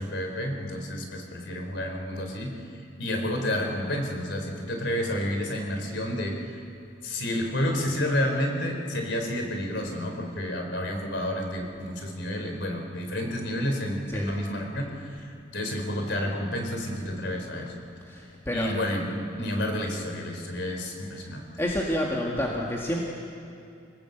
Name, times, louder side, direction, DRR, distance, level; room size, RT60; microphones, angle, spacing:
voice 1, 0.0-6.6 7.0-17.7 18.5-21.5, left 1 dB, 70° left, 3 dB, 3.8 m, -30 dB
voice 2, 18.1-18.7 19.4-19.5 21.6-23.0, equal, 15° left, -3 dB, 1.9 m, -29 dB
27.0 x 19.5 x 8.0 m, 2.5 s
head